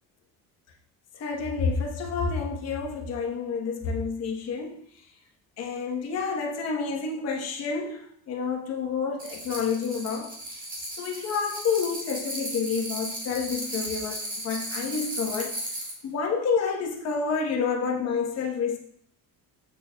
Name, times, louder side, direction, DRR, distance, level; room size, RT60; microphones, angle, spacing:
voice 1, 1.2-4.7 5.6-10.3 11.0-15.5 16.0-18.8, left 5 dB, 50° left, 1.2 m, -29 dB
sound 1, 9.2-16.0, right 1 dB, 25° right, 1.6 m, -35 dB
7.4 x 6.4 x 2.3 m
cardioid pair, 155°, 34 cm